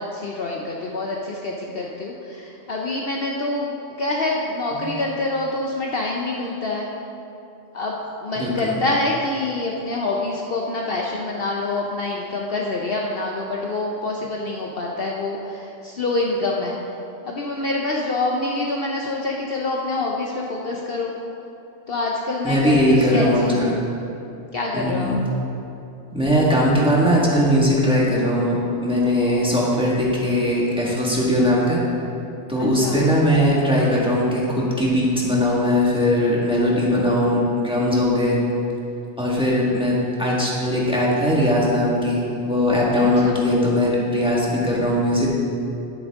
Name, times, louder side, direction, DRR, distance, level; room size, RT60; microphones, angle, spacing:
voice 1, 0.0-6.9 7.7-16.8 17.3-21.2 21.9-23.8 24.5-25.1 32.6-33.0 43.0-43.4, left 2 dB, 55° left, -1 dB, 0.9 m, -26 dB
voice 2, 8.3-8.8 22.4-23.8 24.7-25.2 26.1-31.8 32.5-38.4 39.2-45.3, left 1 dB, 5° right, -6 dB, 1.6 m, -20 dB
11.0 x 8.7 x 3.6 m, 2.8 s
omnidirectional pair, 1.3 m